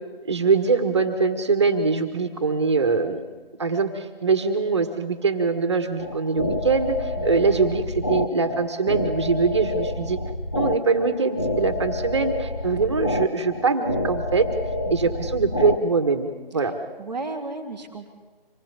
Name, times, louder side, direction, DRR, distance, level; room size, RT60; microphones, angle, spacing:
voice 1, 0.3-3.2 3.6-10.2 10.5-14.5 14.9-16.7, right 4 dB, 30° right, 7 dB, 1.6 m, -23 dB
sound 1, 6.0-15.8, left 1 dB, 20° left, 0.7 m, -28 dB
voice 2, 17.0-18.1, right 3 dB, ahead, -13 dB, 1.3 m, -35 dB
26.0 x 19.5 x 7.3 m, 1.3 s
figure-of-eight pair, 160°, 30 cm